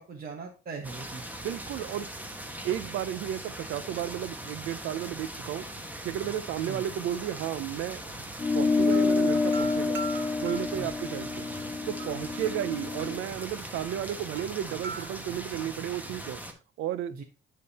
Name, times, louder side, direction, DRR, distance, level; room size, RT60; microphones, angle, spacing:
voice 1, 0.0-1.5 6.7-6.8 10.7-10.9 17.1-17.2, right 4 dB, 50° right, 1.2 m, -40 dB
sound 1, 0.8-16.5, right 1 dB, 10° right, 1.2 m, -40 dB
voice 2, 1.4-2.1 2.6-5.6 6.0-8.2 8.5-10.0 10.4-11.5 11.9-16.4 16.8-17.1, right 11 dB, 90° right, 0.6 m, -33 dB
sound 2, 8.4-13.2, left 4 dB, 15° left, 0.4 m, -28 dB
sound 3, 8.9-16.2, right 5 dB, 70° right, 1.1 m, -44 dB
9.5 x 3.7 x 4.1 m
cardioid pair, 90°, 20 cm